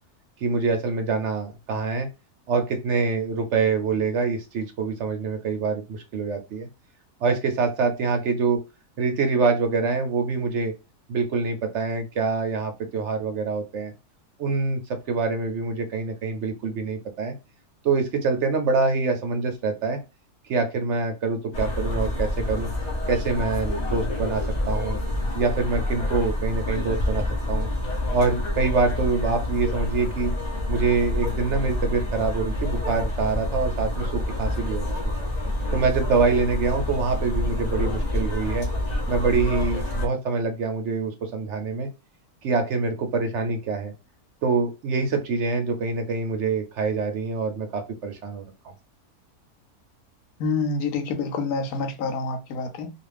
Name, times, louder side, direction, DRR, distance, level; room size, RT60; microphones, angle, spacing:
voice 1, 0.4-2.1 2.5-6.7 7.2-8.6 9.0-10.7 11.1-13.9 14.4-17.3 17.8-20.0 20.5-22.7 23.1-25.0 25.3-27.7 28.1-30.3 30.7-34.9 35.7-38.7 39.1-41.9 42.4-43.9 44.4-48.4, right 4 dB, 65° right, 0.7 m, -25 dB
sound 1, 21.5-40.1, left 1 dB, 50° left, 0.5 m, -27 dB
voice 2, 50.4-52.9, left 4 dB, 75° left, 1.0 m, -27 dB
2.4 x 2.4 x 3.2 m
omnidirectional pair, 1.6 m